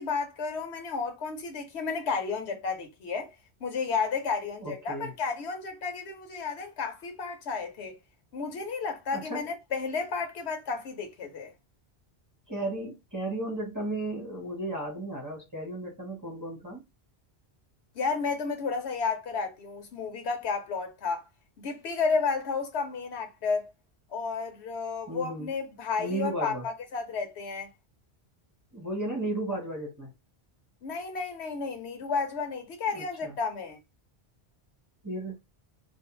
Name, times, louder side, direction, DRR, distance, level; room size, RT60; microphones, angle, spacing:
voice 1, 0.0-3.3 3.6-8.0 8.3-11.5 18.0-21.2 21.6-23.7 24.1-27.7 30.8-33.8, left 5 dB, 80° left, 1.0 m, -32 dB
voice 2, 4.6-5.1 9.1-9.4 12.5-16.8 25.1-25.5 26.0-26.6 28.7-30.1 32.9-33.3 35.0-35.4, right 1 dB, 20° right, 0.9 m, -34 dB
2.5 x 2.0 x 3.0 m
omnidirectional pair, 1.1 m